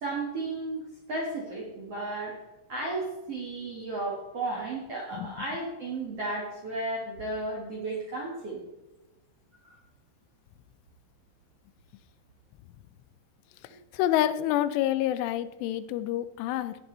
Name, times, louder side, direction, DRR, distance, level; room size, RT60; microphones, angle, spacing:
voice 1, 0.0-2.4 2.7-8.6 9.6-9.8, right 2 dB, 55° right, -3 dB, 1.7 m, -34 dB
voice 2, 13.9-16.8, left 12 dB, 85° left, 13 dB, 3.1 m, -27 dB
17.5 x 9.6 x 4.0 m, 1.0 s
omnidirectional pair, 5.6 m